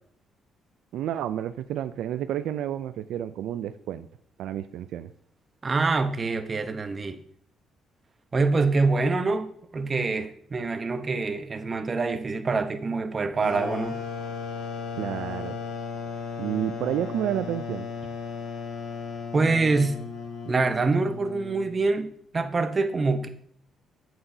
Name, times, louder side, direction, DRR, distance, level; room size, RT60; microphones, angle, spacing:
voice 1, 0.9-4.1 4.4-5.1 14.9-15.6 16.4-17.9, right 11 dB, 85° right, 0.3 m, -30 dB
voice 2, 5.6-7.2 8.3-14.0 19.3-20.0 20.5-23.3, right 3 dB, 35° right, 0.8 m, -25 dB
sound 1, 13.4-21.9, left 5 dB, 75° left, 1.4 m, -35 dB
7.9 x 7.7 x 2.7 m
cardioid pair, 90°, 0 cm